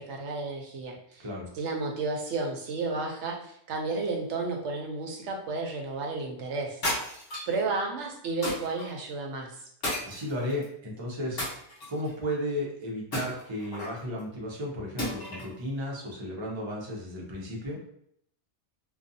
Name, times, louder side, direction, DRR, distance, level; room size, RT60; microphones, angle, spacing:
voice 1, 0.0-1.2 1.5-6.8 7.5-9.6, right 3 dB, 85° right, 2 dB, 0.9 m, -32 dB
voice 2, 1.2-1.5 10.0-11.4 11.9-17.8, equal, 30° right, -3 dB, 0.6 m, -34 dB
sound 1, 6.8-7.6 8.4-8.9 9.8-10.7 11.4-12.1 13.1-14.0 15.0-15.5, left 1 dB, 65° left, 1.2 m, -33 dB
2.5 x 2.3 x 2.6 m, 0.69 s
omnidirectional pair, 1.2 m